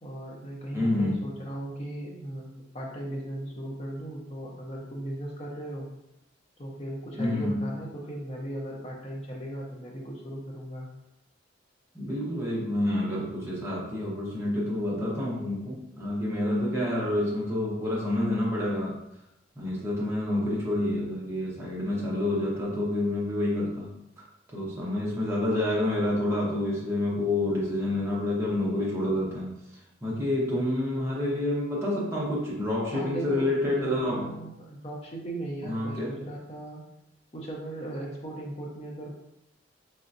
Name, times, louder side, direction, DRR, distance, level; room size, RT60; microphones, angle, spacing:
voice 1, 0.0-5.9 6.6-10.9 32.9-36.8 37.3-39.2, right 1 dB, 30° left, -2 dB, 0.7 m, -37 dB
voice 2, 0.7-1.2 7.2-7.6 11.9-19.0 19.6-23.9 24.5-29.5 30.0-34.3 35.6-36.1, left 1 dB, 15° right, -5 dB, 0.8 m, -28 dB
3.7 x 3.2 x 2.7 m, 0.84 s
head